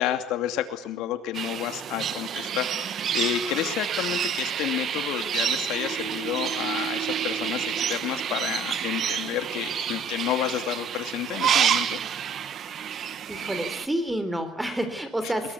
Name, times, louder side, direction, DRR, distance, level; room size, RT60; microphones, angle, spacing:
voice 1, 0.0-11.9, left 12 dB, 75° left, 8 dB, 2.5 m, -30 dB
sound 1, 1.3-13.9, right 9 dB, 40° right, 1.4 m, -29 dB
voice 2, 13.1-15.5, right 1 dB, 5° right, 10 dB, 3.8 m, -29 dB
23.0 x 22.0 x 8.5 m, 0.66 s
cardioid pair, 145°, 0 cm